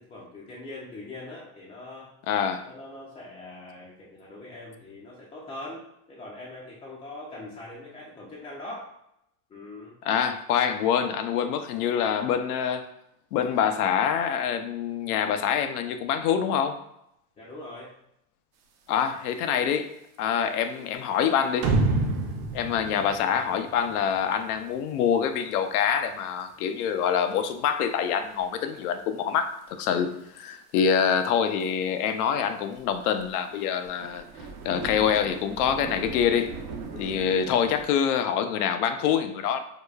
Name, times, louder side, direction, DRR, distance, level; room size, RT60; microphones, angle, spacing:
voice 1, 0.0-2.1 2.7-8.9 9.5-10.0 17.4-17.9 30.0-30.2 36.9-37.2, left 2 dB, 15° left, -5 dB, 0.3 m, -42 dB
voice 2, 2.3-2.6 10.0-12.9 13.3-16.8 18.9-19.9 20.2-21.7 22.5-34.2 34.6-36.6 37.0-39.6, left 8 dB, 85° left, 8 dB, 0.5 m, -25 dB
sound 1, 19.2-19.3 19.6-19.9 20.6-20.8 21.4-21.5 22.1-22.2 22.6-22.7 22.9-23.0 24.1-24.3 24.7-24.8 25.7-25.8 26.4-26.8 27.2-27.3 27.9-28.5 29.6-29.9 30.2-30.3 30.6-30.7 30.9-31.0 31.6-31.7 32.1-32.2 32.7-37.9, right 4 dB, 75° right, 0.8 m, -40 dB
sound 2, 21.6-24.1, right 3 dB, 35° right, 0.5 m, -26 dB
4.8 x 2.2 x 2.3 m, 0.79 s
supercardioid pair, 120°, 44 cm